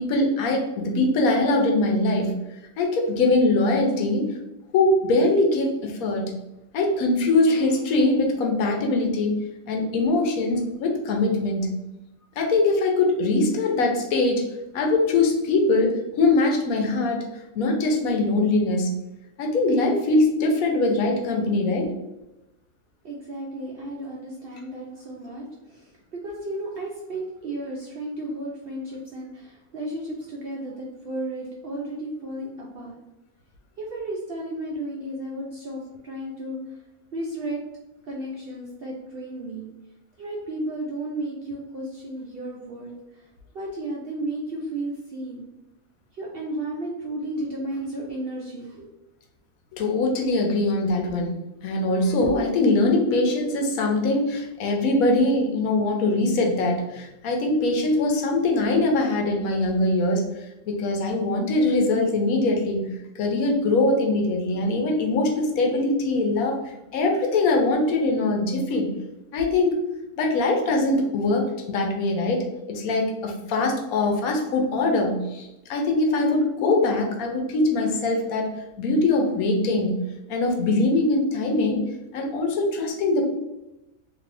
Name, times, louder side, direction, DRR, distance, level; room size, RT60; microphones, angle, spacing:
voice 1, 0.0-2.4 2.8-4.3 4.7-6.3 6.7-9.4 9.7-11.8 12.4-14.4 14.7-17.3 17.6-19.0 19.4-22.0 49.7-51.3 51.6-60.3 60.7-62.9 63.2-68.9 69.3-69.8 70.2-78.5 78.8-81.8 82.1-83.3, left 2 dB, 85° left, 2 dB, 1.1 m, -22 dB
voice 2, 23.0-33.0 33.8-36.6 37.1-37.6 38.0-39.7 40.2-43.3 43.5-45.5 46.2-48.9, right 1 dB, 65° right, -3 dB, 0.6 m, -33 dB
2.7 x 2.6 x 3.3 m, 0.96 s
omnidirectional pair, 1.5 m